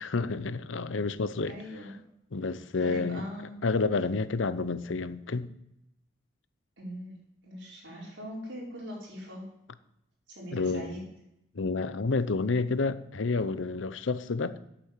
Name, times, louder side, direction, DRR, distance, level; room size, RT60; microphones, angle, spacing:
voice 1, 0.0-1.6 2.3-3.2 3.6-5.5 10.5-11.0 11.5-14.5, left 3 dB, 90° left, 0.7 m, -29 dB
voice 2, 1.5-1.9 2.8-3.6 6.8-7.2 7.4-9.5 10.3-11.0, equal, 85° right, 5.3 m, -41 dB
8.8 x 8.4 x 8.2 m
head